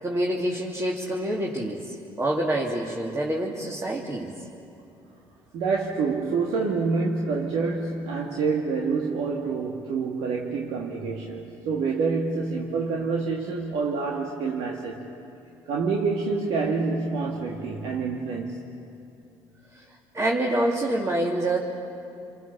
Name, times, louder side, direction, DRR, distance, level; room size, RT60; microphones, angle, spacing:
voice 1, 0.0-4.4 19.7-19.8 20.1-21.6, right 1 dB, 30° right, -2 dB, 2.9 m, -27 dB
voice 2, 5.5-15.0 15.7-18.6, right 4 dB, 75° right, 0 dB, 2.0 m, -27 dB
29.0 x 23.0 x 7.1 m, 2.8 s
supercardioid pair, 75°, 10 cm